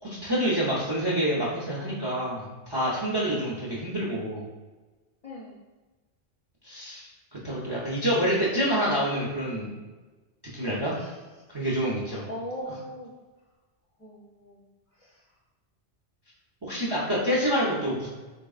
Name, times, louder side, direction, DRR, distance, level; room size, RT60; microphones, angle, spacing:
voice 1, 0.0-4.4 6.6-7.1 7.4-9.7 10.5-10.9 11.5-12.3 16.6-18.1, equal, 30° right, -6 dB, 0.5 m, -27 dB
voice 2, 5.2-5.6 10.6-11.1 12.1-13.1 14.0-14.6 15.0-15.2, equal, 40° left, -5 dB, 0.5 m, -40 dB
3.7 x 3.4 x 2.4 m, 1.2 s
omnidirectional pair, 1.2 m